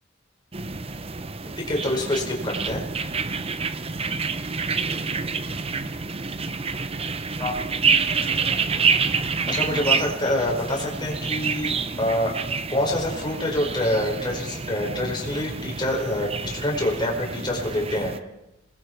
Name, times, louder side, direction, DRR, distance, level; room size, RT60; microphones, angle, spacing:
sound 1, 0.5-18.2, right 5 dB, 30° right, 0.8 m, -28 dB
voice 1, 1.6-2.8 7.4-7.5 9.5-12.4 12.7-18.1, left 1 dB, 20° left, -1 dB, 4.9 m, -26 dB
27.0 x 20.5 x 4.6 m, 0.89 s
head